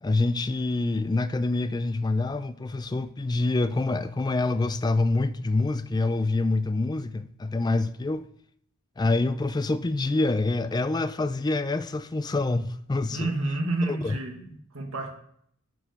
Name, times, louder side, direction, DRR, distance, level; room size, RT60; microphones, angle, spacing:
voice 1, 0.0-8.2 9.0-13.3 13.9-14.2, left 2 dB, 20° left, 0.3 m, -26 dB
voice 2, 13.1-15.1, right 2 dB, 70° right, 1.5 m, -29 dB
10.0 x 4.7 x 5.2 m
head